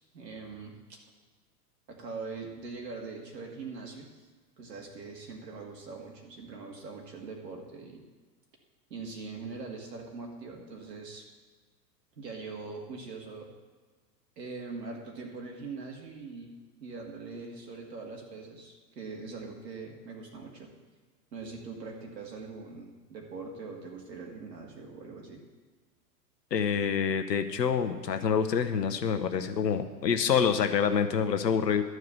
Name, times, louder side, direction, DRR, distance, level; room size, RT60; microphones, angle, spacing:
voice 1, 0.1-1.0 1.9-4.1 4.6-8.0 8.9-11.2 12.2-13.5 14.4-16.5 16.8-20.7 21.3-25.4, right 4 dB, 80° right, 0 dB, 2.2 m, -42 dB
voice 2, 26.5-31.8, left 7 dB, 85° left, 8 dB, 1.0 m, -27 dB
12.0 x 4.8 x 8.1 m, 1.4 s
hypercardioid pair, 100°, 49 cm